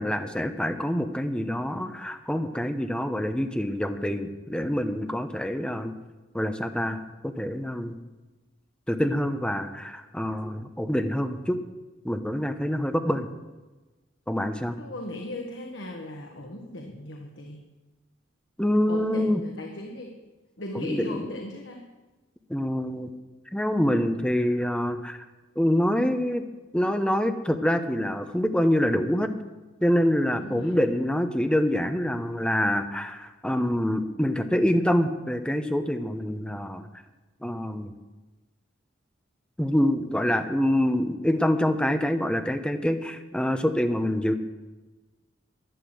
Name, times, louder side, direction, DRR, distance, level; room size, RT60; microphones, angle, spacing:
voice 1, 0.0-5.9 6.3-7.0 7.2-7.9 8.9-11.6 12.0-13.3 14.3-14.8 18.6-19.4 20.7-21.2 22.5-23.1 23.5-25.2 25.6-26.4 26.7-29.3 29.8-36.8 37.4-37.9 39.6-44.3, equal, 5° left, 7 dB, 0.9 m, -26 dB
voice 2, 14.8-17.6 18.9-20.1 20.6-21.9 30.4-30.8, left 1 dB, 70° left, 1 dB, 1.6 m, -37 dB
12.0 x 11.0 x 7.8 m, 1.2 s
head